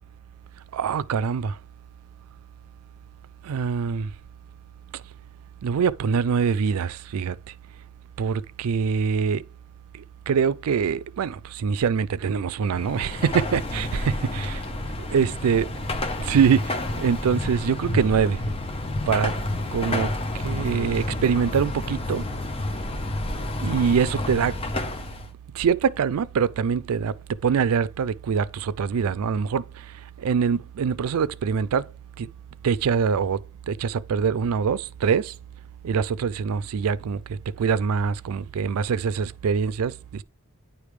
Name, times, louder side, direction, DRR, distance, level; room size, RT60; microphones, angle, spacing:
voice 1, 0.7-1.6 3.4-4.1 5.6-7.4 8.2-9.4 9.9-14.6 15.1-15.7 16.3-18.4 19.1-19.3 19.7-20.1 20.4-22.2 23.6-24.6 25.5-27.1 27.4-29.9 30.2-31.8 32.2-32.3 32.6-33.4 33.7-35.3 35.8-37.2 37.6-40.2, right 6 dB, 80° right, 0.4 m, -24 dB
Car passing by / Traffic noise roadway noise / Engine, 12.7-25.3, left 1 dB, 25° left, 0.6 m, -30 dB
9.7 x 3.4 x 4.9 m
head